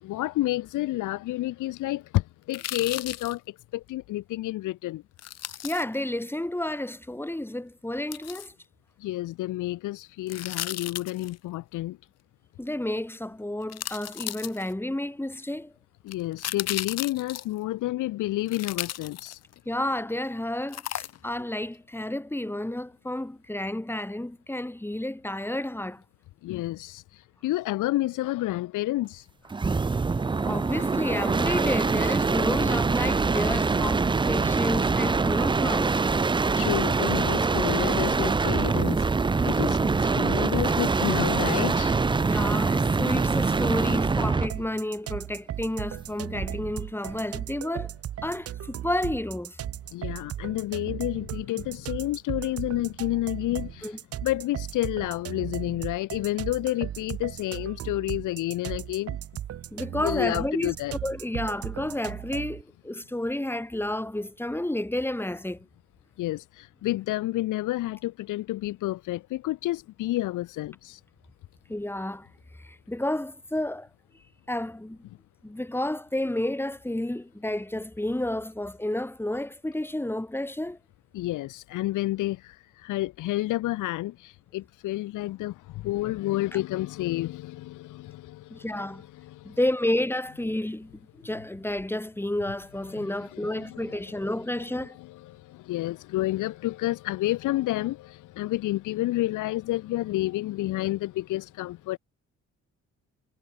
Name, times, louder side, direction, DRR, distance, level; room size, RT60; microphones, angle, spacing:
voice 1, 0.0-3.4 3.7-5.0 9.0-12.0 16.0-19.4 26.4-29.3 36.2-42.2 49.9-59.2 59.9-60.9 66.2-71.0 81.1-88.7 89.0-89.6 92.9-94.3 94.7-102.0, left 17 dB, 90° left, 1.6 m, -30 dB
sound 1, 2.5-3.3 5.2-5.8 8.1-8.5 10.3-11.3 13.0-13.1 13.7-14.9 16.1-17.6 18.5-19.6 20.7-21.4 21.7-21.8, left 12 dB, 55° left, 0.8 m, -35 dB
voice 2, 5.6-8.5 12.6-15.7 19.7-26.0 30.4-36.0 42.2-47.9 48.2-49.6 53.8-54.0 59.7-60.7 61.0-65.6 71.7-72.3 72.6-73.9 74.5-75.0 75.4-80.8 88.5-89.0 89.4-90.9 91.2-95.0, left 1 dB, 5° left, 3.1 m, -31 dB
sound 2, 29.5-44.6 46.3-46.8, right 4 dB, 15° right, 0.5 m, -24 dB
sound 3, 44.5-62.6, right 11 dB, 50° right, 0.7 m, -37 dB
cardioid pair, 90°, 30 cm